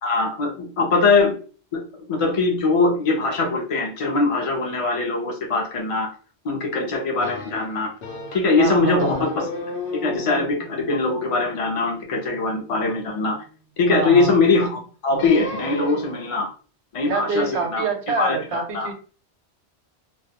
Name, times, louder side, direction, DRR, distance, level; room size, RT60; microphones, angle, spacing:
voice 1, 0.0-1.3 1.7-6.1 6.4-7.9 8.3-9.5 10.0-13.4 13.8-16.5 16.9-17.8 18.2-18.9, left 3 dB, 40° left, 0 dB, 0.6 m, -22 dB
sound 1, 7.2-8.6 9.0-13.3 15.1-16.4, left 3 dB, 80° left, 0.9 m, -35 dB
voice 2, 8.6-9.2 13.9-14.3 17.1-18.9, right 4 dB, 90° right, 5 dB, 0.9 m, -26 dB
2.3 x 2.1 x 2.7 m, 0.39 s
omnidirectional pair, 1.1 m